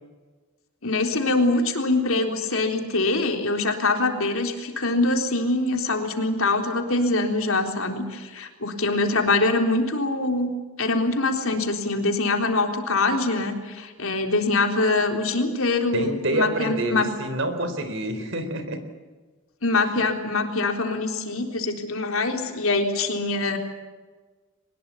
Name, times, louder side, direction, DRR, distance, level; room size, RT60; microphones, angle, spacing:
voice 1, 0.8-10.5 10.8-17.1 19.6-23.6, left 2 dB, 80° left, 4 dB, 3.8 m, -24 dB
voice 2, 15.9-18.8, right 1 dB, 60° right, 10 dB, 3.9 m, -27 dB
23.5 x 21.0 x 8.6 m, 1.4 s
head